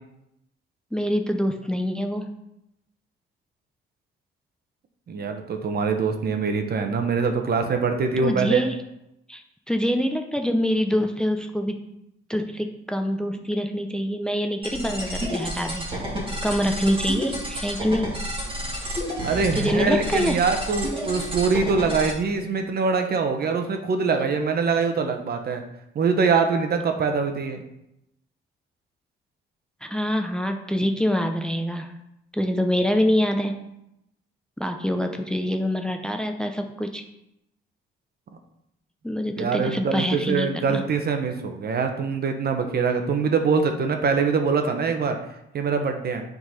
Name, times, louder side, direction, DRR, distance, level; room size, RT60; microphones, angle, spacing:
voice 1, 0.9-2.3 8.2-8.8 9.3-11.8 12.3-15.8 16.4-18.1 19.6-20.4 29.8-31.9 32.3-33.5 34.6-37.0 39.0-40.8, equal, 5° left, 5 dB, 0.7 m, -25 dB
voice 2, 5.1-8.6 19.2-25.6 25.9-27.6 39.4-45.2 45.5-46.2, right 5 dB, 50° right, 6 dB, 1.0 m, -23 dB
sound 1, 14.6-22.1, equal, 25° right, 2.3 m, -30 dB
7.7 x 4.0 x 5.6 m, 0.84 s
cardioid pair, 90°, 20 cm